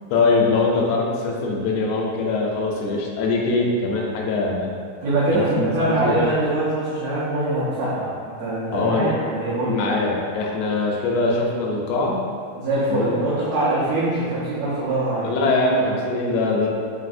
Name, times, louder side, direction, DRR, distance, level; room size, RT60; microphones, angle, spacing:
voice 1, 0.1-4.7 5.3-6.2 8.7-9.1 9.7-12.2 12.9-13.2 15.2-16.7, left 3 dB, 85° left, -1 dB, 1.5 m, -22 dB
voice 2, 5.0-9.8 12.5-15.3, right 2 dB, 70° right, -11 dB, 1.6 m, -23 dB
4.8 x 3.2 x 2.5 m, 2.2 s
omnidirectional pair, 3.6 m